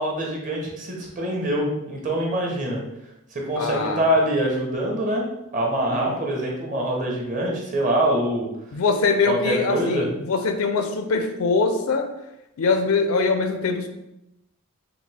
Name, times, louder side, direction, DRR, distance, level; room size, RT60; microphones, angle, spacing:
voice 1, 0.0-2.8 3.3-5.2 5.5-8.5 9.2-10.1, right 1 dB, 35° right, -1 dB, 0.9 m, -24 dB
voice 2, 3.6-4.0 5.9-6.2 8.7-12.1 12.6-13.9, left 4 dB, 75° left, 7 dB, 0.5 m, -23 dB
4.2 x 2.7 x 3.4 m, 0.88 s
head